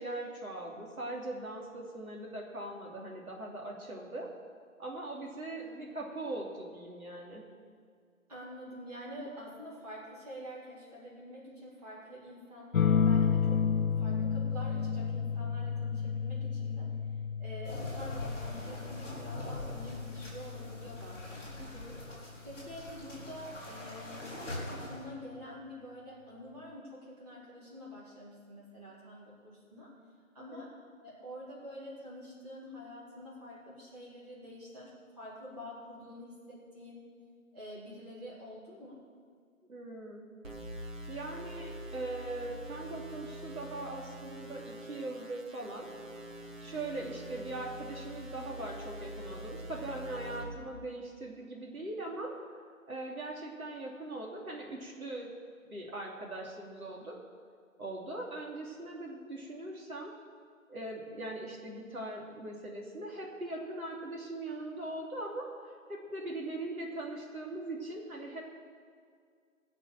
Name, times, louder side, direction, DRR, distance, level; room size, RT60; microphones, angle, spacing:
voice 1, 0.0-4.3 4.8-7.4 21.6-21.9 30.4-30.7 39.7-40.2 41.1-45.9 46.6-52.3 52.9-55.3 55.7-57.2 57.8-60.1 60.7-68.4, right 2 dB, 85° right, -1 dB, 3.0 m, -41 dB
voice 2, 5.5-5.9 8.3-17.0 17.4-21.5 22.4-24.3 24.7-29.9 30.3-30.7 31.0-37.0 37.5-39.0 50.5-50.8, equal, 30° right, -8 dB, 3.7 m, -47 dB
sound 1, 12.7-21.8 23.3-23.8, left 6 dB, 75° left, 0.7 m, -32 dB
sound 2, 17.6-25.0, left 1 dB, 5° left, 3.4 m, -43 dB
sound 3, 40.4-50.4, right 1 dB, 65° right, 4.1 m, -44 dB
19.5 x 6.7 x 7.5 m, 2.1 s
figure-of-eight pair, 180°, 42 cm